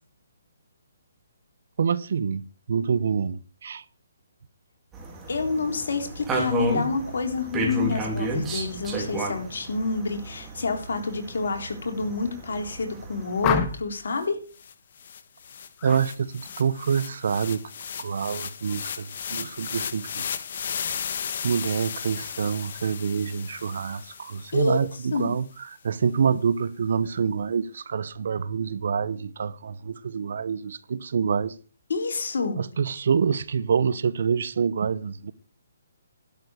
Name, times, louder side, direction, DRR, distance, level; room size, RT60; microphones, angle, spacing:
voice 1, 1.8-3.8 15.8-17.7 18.0-20.3 21.4-31.6 32.6-35.3, right 6 dB, 60° right, 0.9 m, -26 dB
sound 1, 4.9-13.6, right 2 dB, 15° right, 3.4 m, -32 dB
voice 2, 5.3-14.4 24.5-24.8 25.1-25.3 31.9-32.6, left 4 dB, 70° left, 3.6 m, -28 dB
sound 2, 13.4-14.0 15.8-16.1 16.4-16.8, left 8 dB, 25° left, 1.5 m, -28 dB
sound 3, 14.2-14.3 14.6-24.9, left 7 dB, 55° left, 1.4 m, -35 dB
12.0 x 6.7 x 9.1 m
hypercardioid pair, 150°, 0 cm